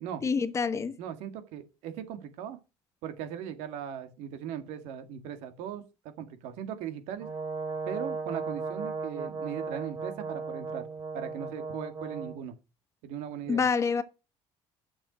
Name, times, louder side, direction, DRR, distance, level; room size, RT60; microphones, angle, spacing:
voice 1, 0.2-1.0 13.5-14.0, left 5 dB, 25° left, 1.0 m, -27 dB
voice 2, 1.0-2.6 3.0-7.3 7.9-10.9 11.1-12.5 13.0-13.6, right 9 dB, 90° right, 2.0 m, -39 dB
Brass instrument, 7.2-12.4, right 4 dB, 35° right, 3.3 m, -36 dB
8.7 x 7.0 x 6.1 m
cardioid pair, 135°, 11 cm